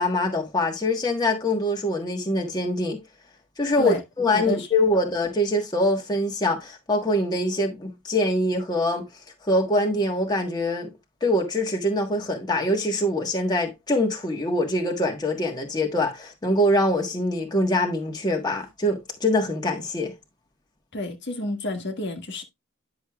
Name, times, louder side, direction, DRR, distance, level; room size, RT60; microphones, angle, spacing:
voice 1, 0.0-3.0 3.6-9.0 9.4-10.9 11.2-20.1, left 1 dB, 20° left, 1.4 m, -24 dB
voice 2, 4.3-4.7 20.9-22.4, left 2 dB, 50° left, 1.5 m, -29 dB
10.0 x 6.4 x 2.3 m
head